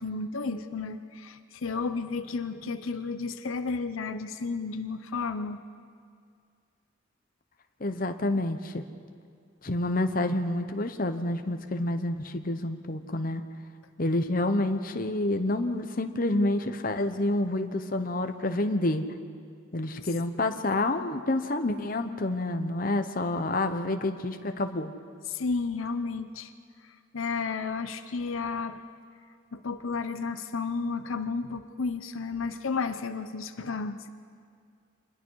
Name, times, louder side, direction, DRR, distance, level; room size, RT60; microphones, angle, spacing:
voice 1, 0.0-5.6 25.3-26.5 27.1-28.8 29.5-34.1, left 4 dB, 85° left, 10 dB, 0.7 m, -32 dB
voice 2, 7.8-8.8 9.6-13.4 14.0-19.0 19.7-24.9, left 2 dB, 45° left, 7 dB, 0.9 m, -28 dB
26.0 x 21.0 x 4.7 m, 2.2 s
head